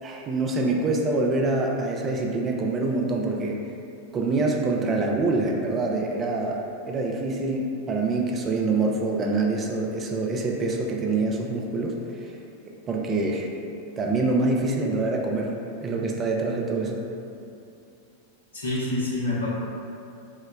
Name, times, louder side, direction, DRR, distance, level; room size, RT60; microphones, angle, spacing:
voice 1, 0.0-3.7 4.1-12.3 12.6-13.5 14.0-15.6 15.8-17.0, right 3 dB, 25° right, 0 dB, 0.4 m, -25 dB
voice 2, 18.5-19.5, left 2 dB, 75° left, -7 dB, 0.8 m, -27 dB
4.9 x 2.1 x 2.2 m, 2.6 s
figure-of-eight pair, 90°, 0 cm